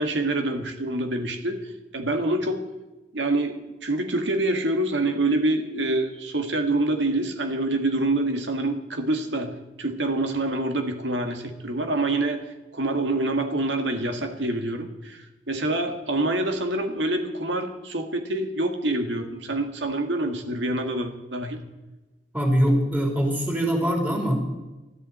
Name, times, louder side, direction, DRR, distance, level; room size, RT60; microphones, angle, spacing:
voice 1, 0.0-1.6 1.9-2.6 3.1-12.4 12.7-21.6, right 2 dB, 80° right, 5 dB, 1.7 m, -26 dB
voice 2, 22.3-24.4, equal, 10° right, 0 dB, 3.4 m, -22 dB
20.5 x 13.5 x 4.2 m, 1.1 s
head